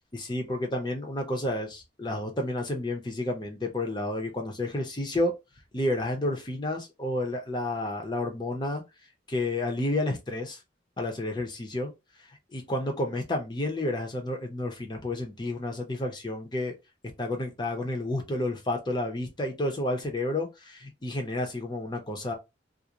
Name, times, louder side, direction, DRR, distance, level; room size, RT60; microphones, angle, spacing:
voice 1, 0.1-5.3 5.7-8.8 9.3-10.6 11.0-11.9 12.3-16.7 17.2-22.3, left 1 dB, 25° left, 0.6 m, -30 dB
2.4 x 2.0 x 2.8 m
head